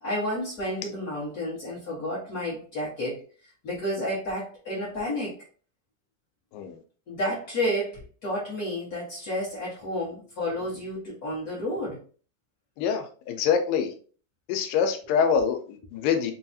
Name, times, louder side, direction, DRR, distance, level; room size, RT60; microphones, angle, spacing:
voice 1, 0.0-3.2 3.6-5.3 7.1-12.0, left 1 dB, 55° left, -7 dB, 1.0 m, -31 dB
voice 2, 12.8-13.9 14.5-16.3, left 7 dB, 90° left, 6 dB, 2.3 m, -25 dB
5.7 x 2.3 x 2.7 m, 0.40 s
omnidirectional pair, 3.9 m